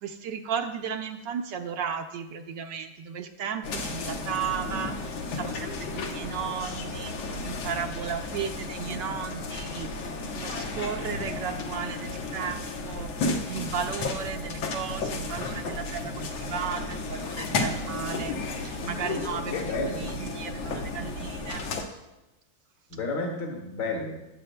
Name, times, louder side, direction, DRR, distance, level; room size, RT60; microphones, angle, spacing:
voice 1, 0.0-9.9 10.3-19.7 20.0-21.7, right 7 dB, 70° right, 6 dB, 1.2 m, -35 dB
sound 1, 3.6-21.8, left 3 dB, 85° left, 1.8 m, -33 dB
voice 2, 11.0-11.4 19.5-20.1 22.9-24.2, left 3 dB, 65° left, 0 dB, 2.2 m, -32 dB
17.5 x 7.7 x 2.2 m, 1.0 s
omnidirectional pair, 2.2 m